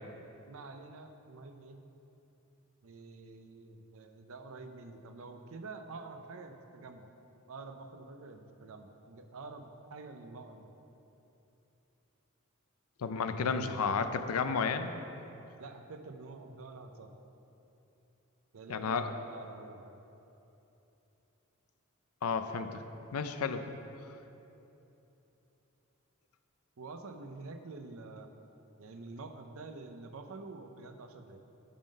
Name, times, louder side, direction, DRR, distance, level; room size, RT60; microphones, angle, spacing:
voice 1, 0.5-1.8 2.8-7.1 7.5-10.7 15.6-17.1 18.5-20.0 26.8-28.3 28.8-31.4, right 3 dB, 70° right, 6 dB, 0.6 m, -47 dB
voice 2, 13.0-14.9 18.7-19.1 22.2-22.8 23.1-23.8, left 5 dB, 85° left, 9 dB, 0.5 m, -32 dB
10.0 x 3.8 x 5.2 m, 3.0 s
head